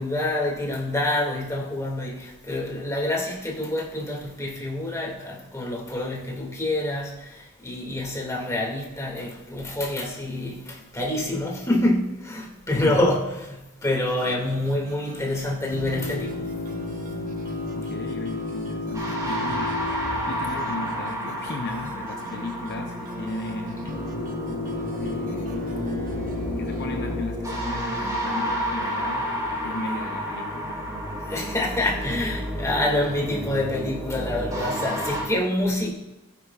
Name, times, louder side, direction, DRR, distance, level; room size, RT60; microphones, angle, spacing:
voice 1, 0.0-16.6 31.3-35.9, left 1 dB, 15° left, -3 dB, 2.1 m, -27 dB
sound 1, 14.1-26.9, right 1 dB, 40° right, 0.8 m, -42 dB
sound 2, 15.7-22.0 23.9-27.2, left 3 dB, 90° left, 0.9 m, -33 dB
voice 2, 17.7-19.8 20.3-24.0 25.0-25.8 26.5-29.3 29.6-30.7, left 2 dB, 50° left, 3 dB, 0.7 m, -35 dB
sound 3, 18.9-35.2, equal, 15° right, 2.8 m, -31 dB
14.5 x 9.9 x 2.4 m, 0.97 s
head